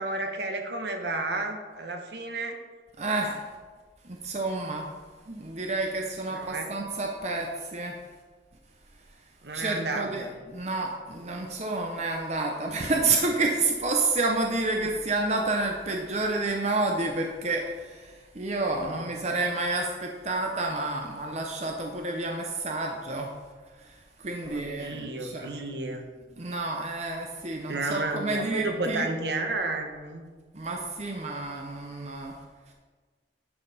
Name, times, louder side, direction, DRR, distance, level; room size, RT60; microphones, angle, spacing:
voice 1, 0.0-2.6 6.3-6.7 9.4-10.3 18.8-19.1 24.5-26.0 27.7-30.2, right 2 dB, 70° right, 4 dB, 1.2 m, -32 dB
voice 2, 3.0-3.5 4.0-4.9 5.3-7.9 9.5-23.3 23.8-25.5 26.4-29.1 30.5-32.3, right 2 dB, 40° right, 1 dB, 0.7 m, -29 dB
11.0 x 5.6 x 4.2 m, 1.4 s
head